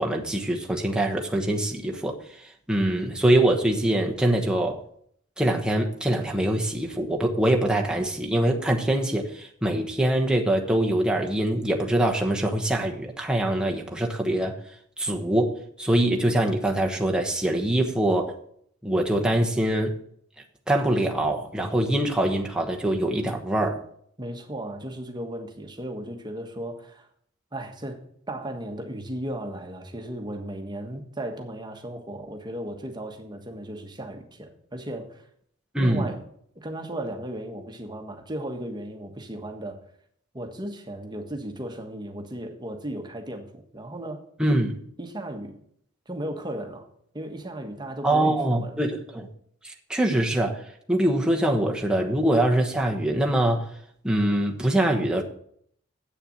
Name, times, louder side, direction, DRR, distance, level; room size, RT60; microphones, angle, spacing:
voice 1, 0.0-2.2 2.7-4.8 5.4-14.6 15.0-18.3 18.8-20.0 20.7-23.8 35.7-36.1 44.4-44.7 48.0-49.3 49.6-50.6 50.9-53.7 54.0-55.2, right 1 dB, 5° right, 0 dB, 1.2 m, -24 dB
voice 2, 24.2-27.1 27.5-35.2 35.8-36.2 36.5-39.8 40.3-44.3 45.0-45.5 46.1-46.9 47.1-48.8, right 1 dB, 20° right, 4 dB, 1.4 m, -35 dB
8.3 x 6.9 x 7.3 m, 0.66 s
head